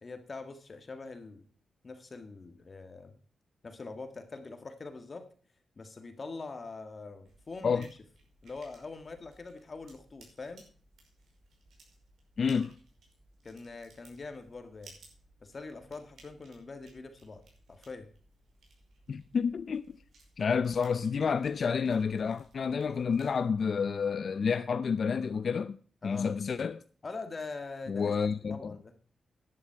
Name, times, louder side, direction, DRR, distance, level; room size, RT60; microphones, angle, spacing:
voice 1, 0.0-1.4 1.8-3.1 3.6-5.3 5.8-8.0 8.4-10.6 13.4-15.0 15.4-17.4 17.7-18.1 26.0-26.3 27.0-28.9, left 3 dB, 35° left, 1.7 m, -43 dB
sound 1, 7.3-23.5, right 2 dB, 85° right, 5.2 m, -61 dB
voice 2, 12.4-12.7 19.1-19.8 20.4-25.8 26.0-26.8 27.9-28.7, left 6 dB, 50° left, 0.5 m, -29 dB
11.5 x 10.5 x 4.5 m
wide cardioid pair, 130°, 0 cm